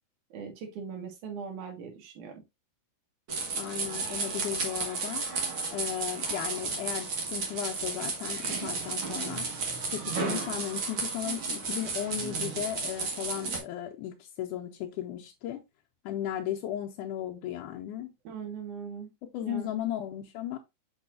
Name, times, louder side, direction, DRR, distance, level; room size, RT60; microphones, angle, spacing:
voice 1, 0.3-2.4 18.2-19.1 19.4-19.7, right 6 dB, 70° right, 3.1 m, -40 dB
sound 1, 3.3-13.6, right 4 dB, 45° right, 2.1 m, -33 dB
voice 2, 3.5-5.2 5.7-9.5 9.9-15.6 16.1-18.1 19.3-20.6, left 11 dB, 80° left, 2.2 m, -35 dB
6.5 x 6.1 x 2.5 m
omnidirectional pair, 3.7 m